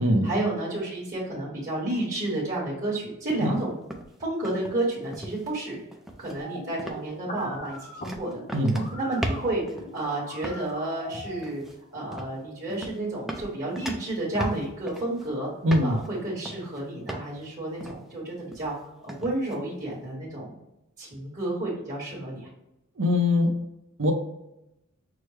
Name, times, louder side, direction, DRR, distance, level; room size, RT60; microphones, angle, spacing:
voice 1, 0.0-3.7 4.2-5.8 6.2-8.4 8.9-9.6 9.9-11.6 11.9-15.5 15.8-18.7 19.0-20.5 21.0-22.4, right 2 dB, 40° right, -5 dB, 1.5 m, -31 dB
sound 1, 3.3-3.6 3.9-4.8 5.1-5.5 5.9-6.4 6.8-7.1 7.4-10.0 10.4-10.7 11.4-11.7 12.1-12.4 12.7-13.0 13.3-15.3 15.7-16.1 16.4-16.8 17.1-17.5 17.8-18.1 18.5-18.8 19.1-19.6, right 1 dB, ahead, 0.5 m, -37 dB
sound 2, 6.4-11.4, left 1 dB, 40° left, 0.8 m, -41 dB
voice 2, 8.5-8.9 15.6-16.0 23.0-23.5 24.0-24.1, left 1 dB, 65° right, 4 dB, 0.8 m, -22 dB
6.1 x 2.2 x 3.2 m, 0.89 s
head